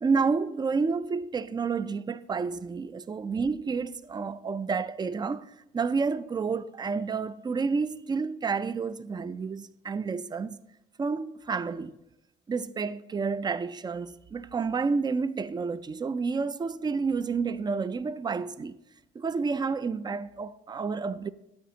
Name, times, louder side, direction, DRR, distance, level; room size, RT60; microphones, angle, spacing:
voice 1, 0.0-10.6 11.0-12.0 12.5-18.8 19.2-21.3, right 5 dB, 20° right, 0.3 m, -30 dB
13.0 x 9.2 x 2.8 m
cardioid pair, 90°, 20 cm